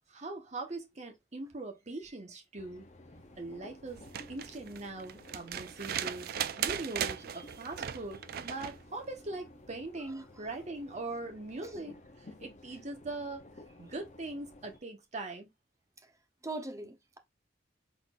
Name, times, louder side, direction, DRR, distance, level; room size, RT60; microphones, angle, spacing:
voice 1, 0.1-2.8 3.4-4.0 4.3-13.4 13.8-15.5, right 2 dB, 40° right, 1.2 m, -41 dB
sound 1, 2.6-14.8, left 1 dB, 40° left, 0.8 m, -54 dB
sound 2, 3.9-8.8 10.4-10.5, right 9 dB, 55° right, 0.4 m, -37 dB
voice 2, 16.4-17.2, right 2 dB, 15° right, 0.8 m, -41 dB
4.1 x 3.9 x 2.5 m
head